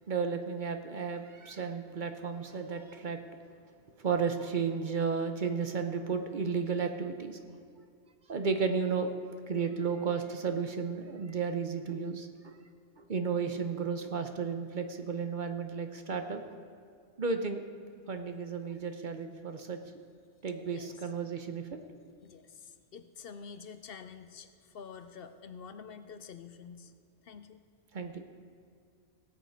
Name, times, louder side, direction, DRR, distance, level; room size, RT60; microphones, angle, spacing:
voice 1, 0.0-3.2 4.0-7.4 8.3-9.1 9.5-12.6 13.0-16.6 17.2-17.6 18.1-20.0 20.4-21.8 27.9-28.2, right 5 dB, 50° right, 6 dB, 0.9 m, -33 dB
voice 2, 22.2-26.9 27.2-27.6, left 6 dB, 60° left, 10 dB, 0.8 m, -48 dB
17.5 x 8.2 x 4.5 m, 2.3 s
omnidirectional pair, 1.1 m